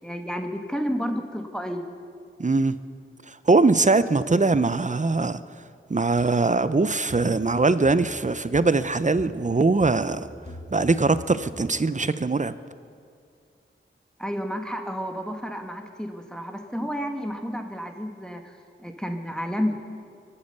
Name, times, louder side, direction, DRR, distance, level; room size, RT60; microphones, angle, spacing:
voice 1, 0.0-1.9 14.2-18.5 18.8-19.9, equal, 5° left, 4 dB, 1.3 m, -31 dB
voice 2, 2.4-2.8 3.5-5.4 5.9-10.2 10.7-12.5, right 3 dB, 35° right, 14 dB, 0.6 m, -21 dB
sound 1, 6.2-6.3 7.1-7.4 7.8-8.2 8.5-8.9 9.2-9.5 9.8-10.9 11.1-11.5, left 1 dB, 50° left, 2.9 m, -42 dB
24.0 x 8.7 x 6.7 m, 2.3 s
wide cardioid pair, 50°, 21 cm